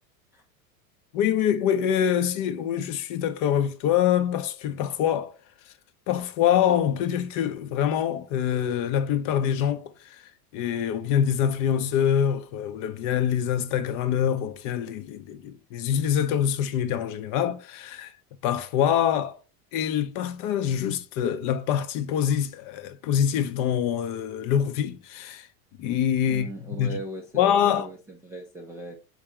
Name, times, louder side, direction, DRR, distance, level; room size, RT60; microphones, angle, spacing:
voice 1, 1.1-5.4 6.1-18.1 18.4-19.4 19.7-25.5 25.8-27.0 27.3-27.9, left 9 dB, 45° left, 0.5 m, -25 dB
voice 2, 26.3-29.0, right 1 dB, 5° right, 0.3 m, -38 dB
4.0 x 2.4 x 4.6 m
supercardioid pair, 130°, 44 cm